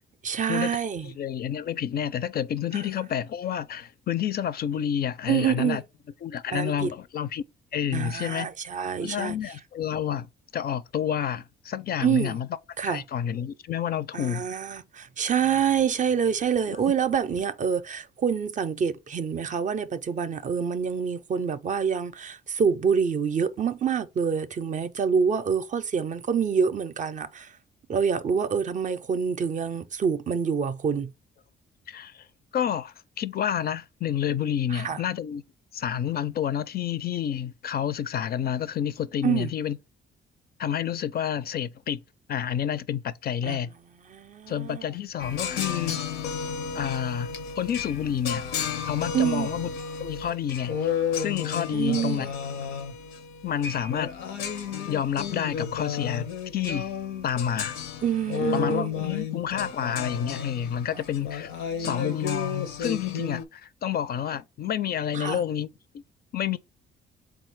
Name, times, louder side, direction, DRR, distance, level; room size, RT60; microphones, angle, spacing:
voice 1, 0.2-1.1 5.3-5.8 6.5-6.9 7.9-9.4 12.0-12.4 12.8-13.0 14.1-27.5 27.9-31.1 34.7-35.0 39.2-39.5 43.4-43.6 44.1-44.8 49.1-49.5 51.7-52.3 58.0-59.2 61.7-62.1 65.1-65.4, right 7 dB, 40° right, 0.5 m, -26 dB
voice 2, 1.0-5.8 6.2-7.4 7.7-8.5 9.0-10.3 10.5-12.5 12.8-14.5 16.7-16.9 31.9-32.3 32.5-35.4 35.7-39.8 40.6-42.0 42.3-43.7 44.5-46.0 46.7-48.5 48.9-49.7 50.0-52.3 53.4-54.1 54.9-56.9 57.2-57.8 58.5-61.5 61.8-65.7 66.3-66.6, left 9 dB, 50° left, 0.4 m, -29 dB
sound 1, 45.2-63.4, left 6 dB, 90° left, 0.7 m, -32 dB
3.8 x 2.3 x 4.6 m
cardioid pair, 90°, 20 cm